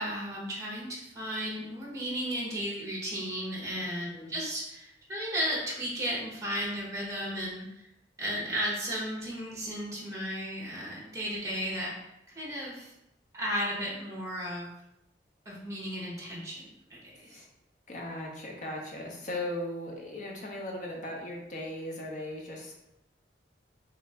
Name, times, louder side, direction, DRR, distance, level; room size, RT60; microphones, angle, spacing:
voice 1, 0.0-7.9 8.2-12.9 13.3-14.7 15.4-17.4, equal, 15° right, -4 dB, 0.9 m, -34 dB
voice 2, 17.9-22.7, left 1 dB, 45° left, -1 dB, 0.7 m, -38 dB
3.3 x 2.5 x 3.3 m, 0.85 s
head